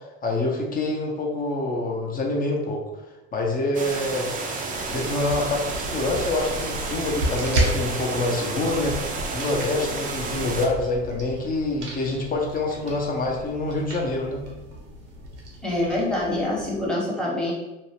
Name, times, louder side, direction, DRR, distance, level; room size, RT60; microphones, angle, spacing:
voice 1, 0.2-2.8 3.3-4.3 4.9-9.0 9.3-14.4, left 2 dB, 25° left, -1 dB, 0.7 m, -26 dB
sound 1, 3.7-10.7, right 4 dB, 25° right, 0.5 m, -31 dB
sound 2, 4.7-16.9, right 1 dB, 80° right, 0.8 m, -33 dB
voice 2, 15.6-17.5, left 1 dB, ahead, -5 dB, 1.0 m, -25 dB
2.6 x 2.0 x 3.0 m, 1.1 s
hypercardioid pair, 80°, 33 cm